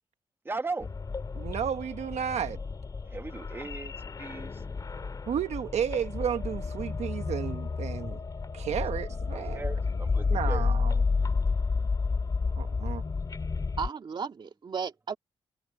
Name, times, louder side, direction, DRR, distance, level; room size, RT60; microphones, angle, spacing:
voice 1, 0.4-0.9 3.0-3.9 4.2-4.5 9.3-10.7, right 3 dB, 20° right, 1.4 m, -37 dB
sound 1, 0.8-13.9, left 4 dB, 35° left, 2.2 m, -31 dB
voice 2, 1.3-2.6 5.3-8.2 8.5-9.6 10.3-11.0 12.6-13.0, right 8 dB, 80° right, 1.3 m, -32 dB
voice 3, 13.8-15.2, right 6 dB, 45° right, 2.0 m, -34 dB
wide cardioid pair, 130°, 11 cm